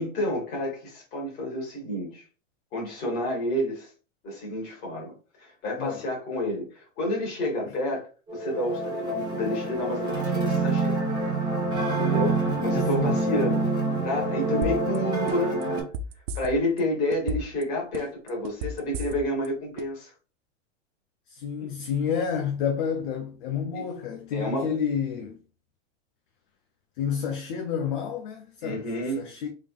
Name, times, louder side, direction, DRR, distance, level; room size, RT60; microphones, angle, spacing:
voice 1, 0.0-2.2 2.7-3.9 4.2-8.0 8.3-11.0 11.8-13.6 14.0-15.9 16.3-20.1 21.6-21.7 23.8-23.9 24.3-24.7 28.6-29.3, left 1 dB, 25° left, 1.7 m, -30 dB
sound 1, 8.3-15.8, right 3 dB, 10° right, 1.1 m, -26 dB
voice 2, 12.4-13.5 21.3-25.4 27.0-28.9 29.2-29.5, left 7 dB, 45° left, 0.4 m, -30 dB
sound 2, 14.6-15.0 15.3-16.8 17.1-17.6 17.9-19.5 19.8-19.9, right 1 dB, 55° right, 0.5 m, -32 dB
3.6 x 3.4 x 2.3 m
supercardioid pair, 160°, 37 cm